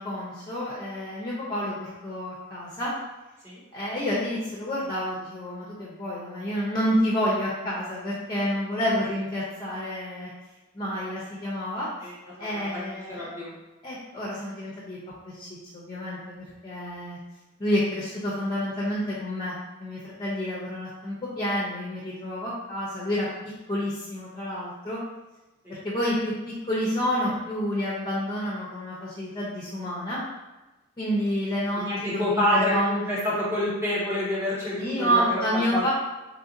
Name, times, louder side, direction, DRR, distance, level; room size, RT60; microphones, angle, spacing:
voice 1, 0.0-2.9 3.7-10.3 10.7-11.9 12.4-13.2 13.8-15.0 15.3-15.5 15.7-17.2 17.6-19.5 19.8-23.3 23.7-25.0 25.7-26.3 26.7-30.2 31.0-33.1 34.8-35.9, equal, 20° left, -6 dB, 0.7 m, -29 dB
voice 2, 12.0-13.5 25.6-25.8 31.8-35.8, left 1 dB, 15° right, -8 dB, 1.1 m, -28 dB
2.9 x 2.6 x 3.8 m, 1.1 s
head